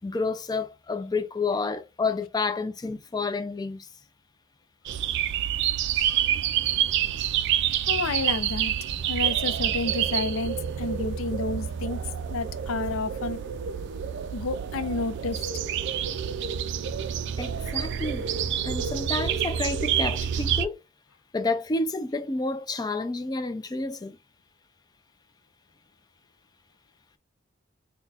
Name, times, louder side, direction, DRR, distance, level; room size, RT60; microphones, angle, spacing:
voice 1, 0.0-3.9 17.4-18.3 18.6-20.8 21.3-24.2, left 3 dB, 20° left, 0.4 m, -30 dB
sound 1, 4.9-20.7, right 9 dB, 55° right, 0.3 m, -28 dB
voice 2, 7.9-8.8 9.1-13.4 14.3-15.4, left 3 dB, 75° left, 0.5 m, -31 dB
3.9 x 2.2 x 4.1 m
head